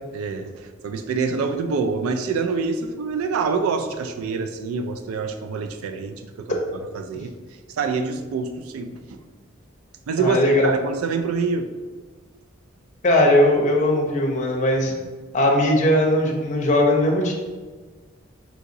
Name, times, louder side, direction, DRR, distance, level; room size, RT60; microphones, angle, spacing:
voice 1, 0.1-6.6 6.9-7.3 7.8-9.2 10.1-11.7, right 5 dB, 85° right, 8 dB, 0.3 m, -26 dB
voice 2, 10.2-10.7 13.0-14.9 15.3-17.3, left 1 dB, 35° left, 0 dB, 0.5 m, -19 dB
3.8 x 2.8 x 2.6 m, 1.4 s
head